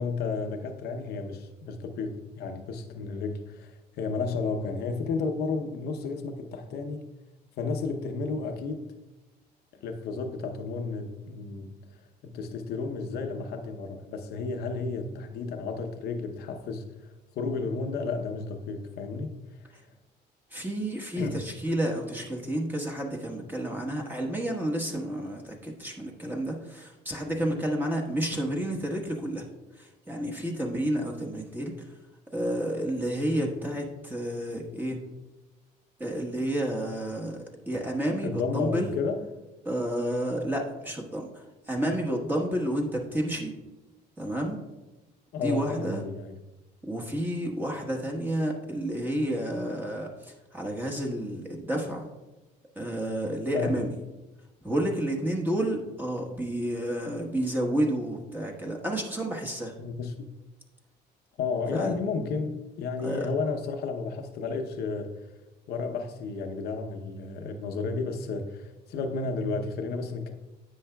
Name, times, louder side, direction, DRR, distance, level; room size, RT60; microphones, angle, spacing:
voice 1, 0.0-7.0 7.6-8.9 9.8-11.8 12.2-16.9 17.4-19.3 21.2-21.5 38.2-39.2 45.3-46.3 53.5-53.8 59.8-60.2 61.4-65.1 65.7-70.3, left 4 dB, 70° left, 5 dB, 0.8 m, -32 dB
voice 2, 20.5-29.5 29.7-31.9 32.3-35.0 36.0-39.0 39.6-43.5 44.2-44.6 45.4-46.0 46.8-52.1 52.7-53.9 54.6-59.7 61.7-61.9 63.0-63.3, right 1 dB, 10° right, 0 dB, 1.3 m, -30 dB
10.0 x 7.9 x 2.3 m, 1.1 s
cardioid pair, 110°, 17 cm